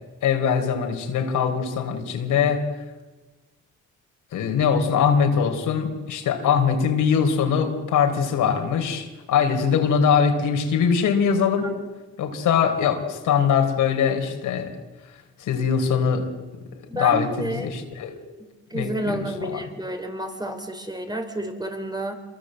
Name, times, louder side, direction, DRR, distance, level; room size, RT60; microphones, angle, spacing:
voice 1, 0.2-2.6 4.3-11.7 12.2-14.7 15.4-16.3 16.7-18.2 18.7-19.6, left 7 dB, 80° left, 5 dB, 4.1 m, -22 dB
voice 2, 16.9-17.7 18.7-22.1, right 1 dB, 15° right, 6 dB, 4.5 m, -30 dB
27.5 x 23.0 x 7.8 m, 1.2 s
cardioid pair, 90°, 30 cm